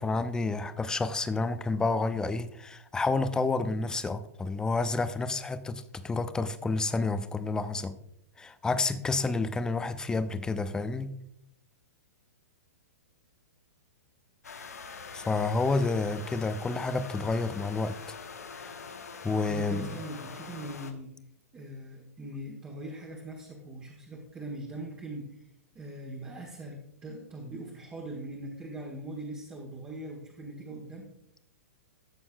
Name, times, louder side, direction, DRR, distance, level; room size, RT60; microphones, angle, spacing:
voice 1, 0.0-8.0 8.4-11.1 15.1-18.0 18.5-18.8 19.2-19.9, left 3 dB, 10° left, 0.5 m, -29 dB
sound 1, 14.4-20.9, left 5 dB, 75° left, 1.0 m, -44 dB
voice 2, 19.5-21.1 21.5-25.4 25.7-31.1, right 1 dB, 15° right, 1.4 m, -41 dB
13.5 x 7.0 x 2.3 m
figure-of-eight pair, 110°, 8 cm